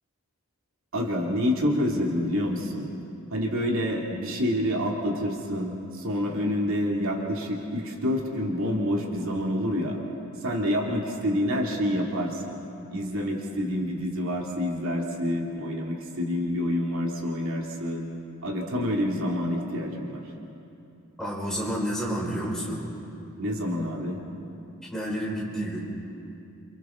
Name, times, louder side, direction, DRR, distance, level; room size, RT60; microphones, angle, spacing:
voice 1, 0.9-2.9 3.3-10.0 10.4-12.5 12.9-18.0 18.4-20.2 23.4-24.2, equal, 70° right, -1 dB, 2.4 m, -27 dB
voice 2, 21.2-22.8 24.9-25.9, equal, 5° left, -5 dB, 4.6 m, -30 dB
28.5 x 28.0 x 3.7 m, 2.7 s
head